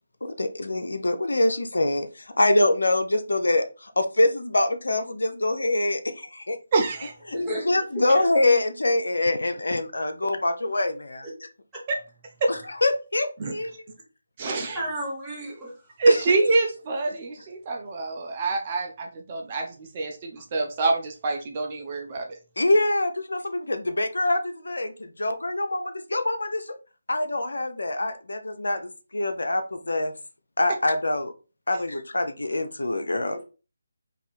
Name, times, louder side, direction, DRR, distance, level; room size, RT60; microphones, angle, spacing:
voice 1, 0.2-6.6 7.3-7.4 7.6-11.5 12.5-13.7 16.1-16.4 22.6-26.8 27.1-30.1 30.6-31.3 31.7-33.4, left 2 dB, 75° left, 7 dB, 0.5 m, -25 dB
voice 2, 6.7-7.1 11.9-12.0 12.4-12.5 13.4-13.5 14.4-14.8 16.0-22.4, right 3 dB, 30° right, 2 dB, 0.5 m, -25 dB
voice 3, 7.3-7.7 7.9-8.2 14.7-15.7 33.3-33.4, equal, 5° right, -7 dB, 1.3 m, -32 dB
2.7 x 2.5 x 4.0 m, 0.33 s
figure-of-eight pair, 155°, 0 cm